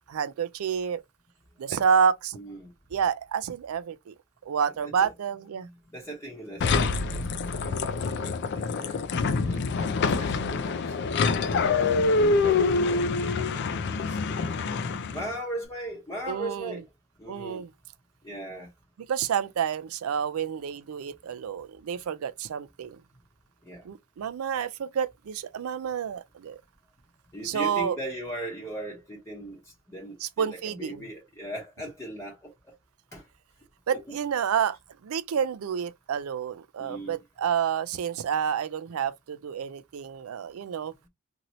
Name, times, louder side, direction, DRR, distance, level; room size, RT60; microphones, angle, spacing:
voice 1, 0.1-1.0 1.6-2.4 2.9-4.1 4.4-5.7 11.3-11.9 16.3-16.8 17.3-17.7 19.1-23.0 23.8-26.6 27.4-28.0 30.2-31.1 33.9-34.8 35.0-40.9, right 7 dB, 85° right, 0.4 m, -29 dB
voice 2, 2.3-2.7 4.6-5.1 5.6-9.0 9.4-9.9 10.2-11.0 11.5-14.5 15.1-16.9 17.2-17.6 18.2-18.7 23.6-23.8 27.3-32.5 33.1-33.3 33.9-34.0 36.8-37.2, right 1 dB, 15° left, 0.9 m, -39 dB
sound 1, 6.6-15.3, left 4 dB, 55° left, 0.4 m, -26 dB
2.8 x 2.6 x 2.9 m
head